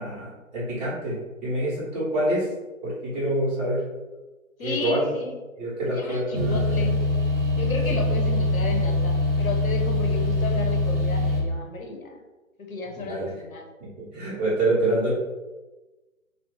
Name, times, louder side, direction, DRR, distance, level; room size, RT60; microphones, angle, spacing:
voice 1, 0.0-2.5 2.8-3.8 4.6-5.2 5.6-6.9 12.9-13.3 14.0-15.1, right 1 dB, 30° right, -10 dB, 1.3 m, -26 dB
voice 2, 4.6-5.4 5.9-7.0 7.6-12.2 12.6-13.7, left 4 dB, 80° left, 3 dB, 0.7 m, -33 dB
sound 1, 6.3-11.4, left 2 dB, 45° right, 0.8 m, -23 dB
2.8 x 2.3 x 3.5 m, 1.2 s
figure-of-eight pair, 135°, 41 cm